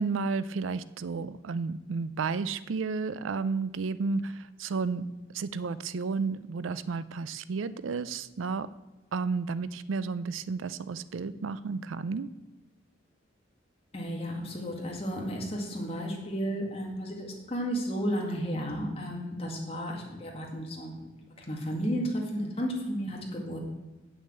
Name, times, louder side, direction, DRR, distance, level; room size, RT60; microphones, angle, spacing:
voice 1, 0.0-8.7 9.1-12.3, right 4 dB, 85° right, 16 dB, 0.5 m, -32 dB
voice 2, 13.9-21.0 21.4-23.6, equal, 30° left, -1 dB, 2.1 m, -33 dB
8.5 x 6.4 x 7.9 m, 1.1 s
head